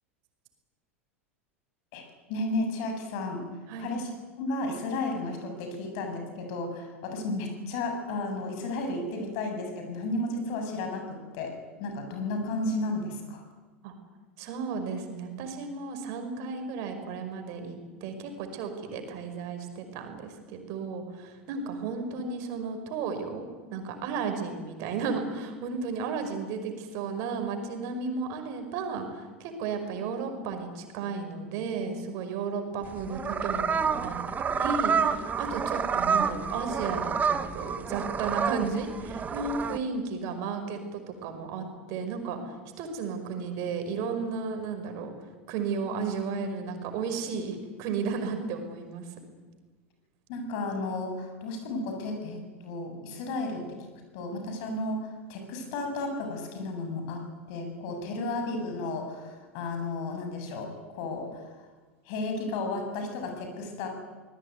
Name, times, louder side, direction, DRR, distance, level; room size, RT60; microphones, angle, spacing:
voice 1, 2.3-3.5 3.8-4.1 4.4-13.4 50.3-53.9 54.1-61.7 62.1-63.9, left 2 dB, 50° left, 5 dB, 7.5 m, -33 dB
voice 2, 14.4-34.2 34.4-49.1, right 5 dB, 50° right, 6 dB, 5.4 m, -34 dB
sound 1, 32.8-39.8, right 6 dB, 25° right, 1.7 m, -29 dB
25.0 x 20.0 x 9.4 m, 1.3 s
figure-of-eight pair, 85°, 7 cm